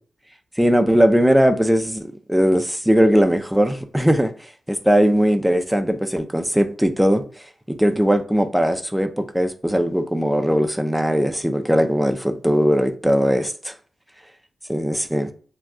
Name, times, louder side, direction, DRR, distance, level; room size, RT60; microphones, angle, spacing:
voice 1, 0.6-4.3 4.7-7.2 7.7-13.7 14.7-15.3, equal, 5° right, 0.4 m, -19 dB
2.2 x 2.2 x 3.7 m
cardioid pair, 50°, 0 cm